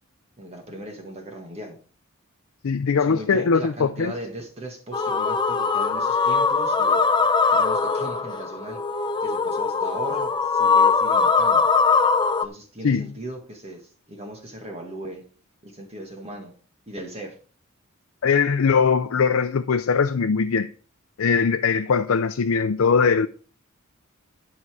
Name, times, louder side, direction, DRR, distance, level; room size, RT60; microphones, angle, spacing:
voice 1, 0.4-1.8 3.0-7.0 7.5-8.8 9.2-11.7 12.4-15.2 15.6-16.5 16.9-17.4, right 1 dB, 30° right, 1.6 m, -38 dB
voice 2, 2.6-4.1 12.8-13.1 18.2-20.7 21.2-23.3, left 5 dB, 80° left, 0.5 m, -21 dB
sound 1, 4.9-12.4, left 5 dB, 20° left, 0.6 m, -21 dB
12.0 x 5.6 x 4.7 m
head